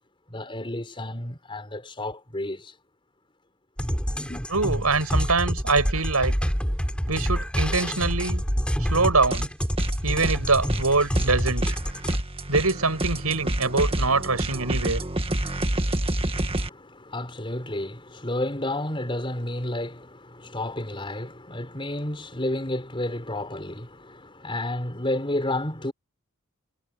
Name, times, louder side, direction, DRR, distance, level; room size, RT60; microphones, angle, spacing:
voice 1, 0.3-2.7 4.1-4.4 16.5-25.9, left 1 dB, 25° left, 4.8 m, -31 dB
sound 1, 3.8-12.2, equal, 5° left, 6.6 m, -27 dB
voice 2, 4.5-6.5 7.1-8.4 8.8-9.5 10.0-11.7 12.5-15.0, right 3 dB, 85° right, 7.6 m, -24 dB
sound 2, 9.3-10.0 10.2-16.7, right 1 dB, 25° right, 1.7 m, -28 dB
head